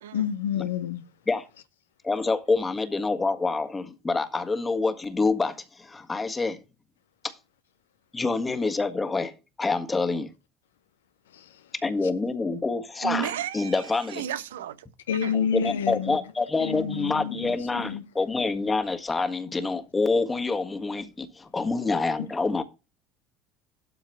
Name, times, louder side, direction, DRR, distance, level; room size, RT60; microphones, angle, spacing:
voice 1, 0.1-1.0 11.3-11.7 12.0-12.1 15.1-16.2 16.6-18.0 22.2-22.3, left 8 dB, 80° left, 0.6 m, -29 dB
voice 2, 2.0-6.6 7.2-7.3 8.1-10.3 11.8-14.2 15.3-22.6, left 3 dB, 20° left, 1.5 m, -27 dB
voice 3, 13.0-13.8 14.1-14.8 15.2-15.4, right 10 dB, 75° right, 0.8 m, -32 dB
12.5 x 4.7 x 4.7 m
figure-of-eight pair, 65°, 0 cm